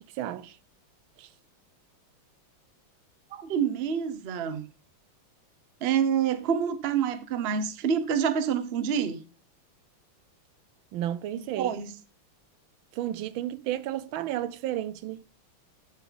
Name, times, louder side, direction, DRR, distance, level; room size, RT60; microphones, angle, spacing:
voice 1, 0.1-0.6 1.2-1.3 10.9-11.8 12.9-15.2, right 12 dB, 85° right, 1.5 m, -32 dB
voice 2, 3.3-4.7 5.8-9.2 11.4-11.9, right 7 dB, 60° right, 0.6 m, -27 dB
13.0 x 5.7 x 3.9 m
omnidirectional pair, 2.2 m